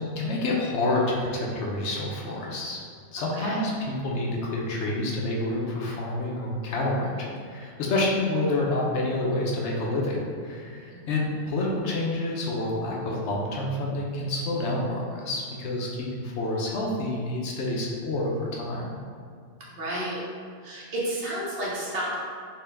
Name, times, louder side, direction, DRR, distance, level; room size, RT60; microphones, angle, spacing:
voice 1, 0.0-2.8 3.1-18.9, left 2 dB, 70° left, -2 dB, 0.9 m, -28 dB
voice 2, 3.2-3.6 10.9-11.0 19.7-20.2 20.6-22.1, right 1 dB, 55° right, -6 dB, 0.9 m, -31 dB
4.3 x 2.2 x 3.3 m, 2.2 s
omnidirectional pair, 1.2 m